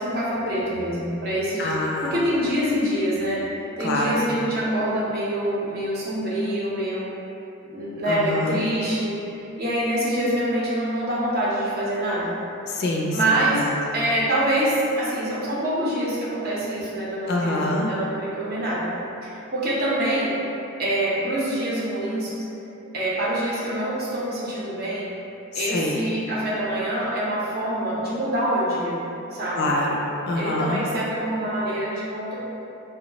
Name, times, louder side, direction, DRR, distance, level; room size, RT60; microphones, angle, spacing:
voice 1, 0.0-3.4 3.8-7.1 7.7-12.3 13.1-13.7 13.9-18.9 19.2-20.3 20.8-22.3 22.9-25.1 25.5-29.0 29.3-29.7 30.3-32.4, right 1 dB, 45° right, -7 dB, 0.6 m, -25 dB
voice 2, 1.6-2.2 3.8-4.3 8.1-8.6 12.7-13.8 17.3-17.9 25.5-26.0 29.6-30.8, left 1 dB, 50° left, -2 dB, 0.3 m, -26 dB
2.2 x 2.0 x 3.8 m, 2.9 s
head